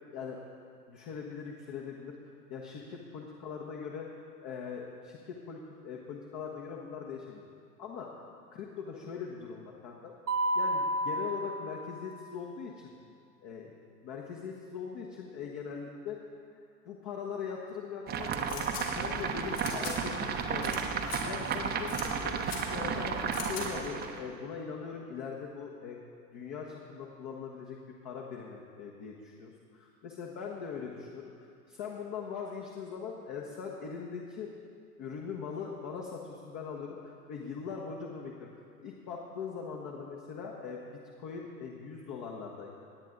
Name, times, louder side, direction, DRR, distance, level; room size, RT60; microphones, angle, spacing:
voice 1, 0.1-0.4 0.9-2.1 2.5-4.1 4.4-7.4 7.8-10.1 10.5-12.9 13.4-13.7 14.0-16.2 16.8-21.0 21.2-22.3 22.7-26.0 26.3-27.8 28.0-34.5 35.0-38.5 38.8-40.8 41.2-42.7, left 6 dB, 40° left, -1 dB, 1.5 m, -41 dB
Mallet percussion, 10.3-12.3, right 1 dB, 85° right, 1.5 m, -32 dB
sound 1, 18.1-24.2, right 6 dB, 20° right, 0.8 m, -33 dB
sound 2, 18.5-18.8 19.6-19.9 20.6-20.8 21.0-21.2 21.9-22.0 22.4-22.6 23.3-23.6, left 7 dB, 60° left, 3.4 m, -40 dB
18.0 x 9.6 x 3.9 m, 2.3 s
figure-of-eight pair, 95°, 46 cm